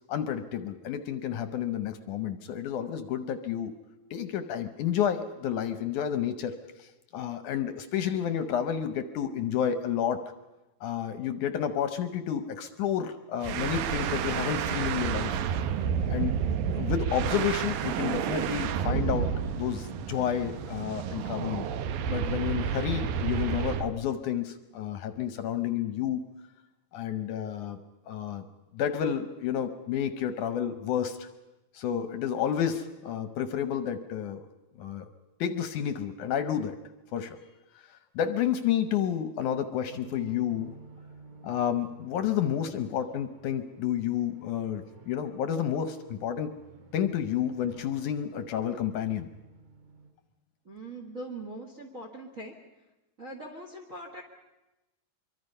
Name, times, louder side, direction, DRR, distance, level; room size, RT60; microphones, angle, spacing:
voice 1, 0.1-3.7 4.1-10.2 10.8-15.3 16.1-16.4 16.7-19.3 19.6-21.7 22.1-26.2 26.9-27.8 28.1-28.4 28.7-31.3 31.7-34.4 34.8-35.1 35.4-36.8 37.1-37.4 37.9-40.7 41.4-46.5 46.9-49.3, left 9 dB, 70° left, 10 dB, 2.0 m, -30 dB
sound 1, 13.4-23.9, right 8 dB, 80° right, 2.7 m, -30 dB
sound 2, 39.9-50.1, right 4 dB, 55° right, 3.2 m, -53 dB
voice 2, 50.6-52.5 53.2-54.2, right 2 dB, 35° right, 4 dB, 1.3 m, -41 dB
25.0 x 23.5 x 5.5 m, 1.0 s
omnidirectional pair, 4.1 m